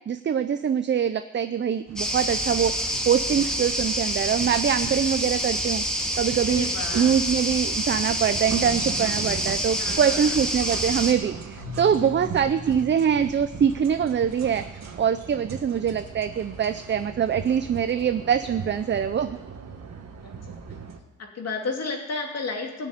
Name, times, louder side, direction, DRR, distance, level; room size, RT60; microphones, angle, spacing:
voice 1, 0.1-5.8 6.2-6.7 7.0-19.4, right 8 dB, 40° right, 10 dB, 0.5 m, -24 dB
sound 1, 1.9-21.0, right 5 dB, 60° right, 1.8 m, -40 dB
sound 2, 2.0-11.1, equal, ahead, 1.8 m, -27 dB
voice 2, 6.5-7.2 9.8-10.3 12.0-12.1 20.2-20.3 20.7-20.8 21.2-22.9, left 3 dB, 55° left, 2 dB, 2.6 m, -32 dB
Keyboard (musical), 11.6-14.5, left 6 dB, 85° left, 2.6 m, -42 dB
18.0 x 6.8 x 9.5 m, 1.0 s
wide cardioid pair, 155°, 30 cm